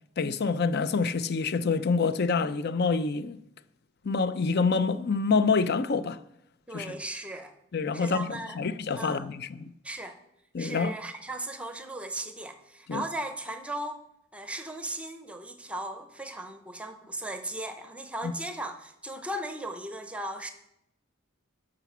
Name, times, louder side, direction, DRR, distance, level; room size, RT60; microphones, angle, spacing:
voice 1, 0.2-3.4 4.0-6.2 6.7-7.0 7.7-9.7 10.5-11.0 12.9-13.0 18.2-18.3, left 4 dB, 50° left, 0.5 m, -27 dB
voice 2, 6.7-7.5 7.9-8.6 9.0-9.3 9.8-10.2 10.6-14.0 14.3-20.5, right 1 dB, 5° right, 0.7 m, -37 dB
11.5 x 5.1 x 7.2 m
head